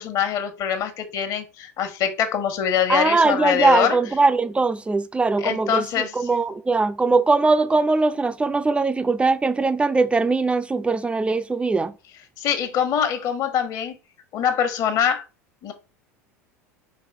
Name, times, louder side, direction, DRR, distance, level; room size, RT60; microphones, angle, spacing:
voice 1, 0.0-4.0 5.4-6.1 12.4-14.0 14.3-15.2 15.6-15.7, left 8 dB, 50° left, 1.6 m, -23 dB
voice 2, 2.9-11.9, right 3 dB, 15° right, 0.6 m, -21 dB
4.8 x 4.1 x 4.8 m
hypercardioid pair, 75°, 9 cm